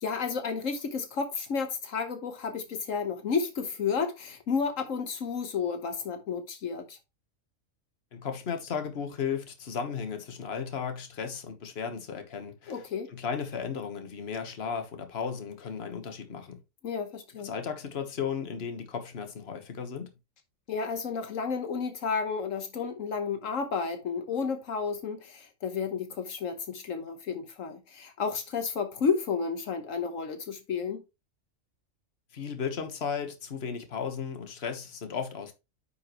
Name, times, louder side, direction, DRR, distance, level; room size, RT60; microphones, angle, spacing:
voice 1, 0.0-7.0 12.7-13.1 16.8-17.5 20.7-31.0, left 5 dB, 75° left, 1.4 m, -32 dB
voice 2, 8.1-12.8 13.1-16.6 17.4-20.1 32.3-35.5, left 6 dB, 50° left, 1.4 m, -35 dB
9.7 x 5.6 x 3.0 m
omnidirectional pair, 1.4 m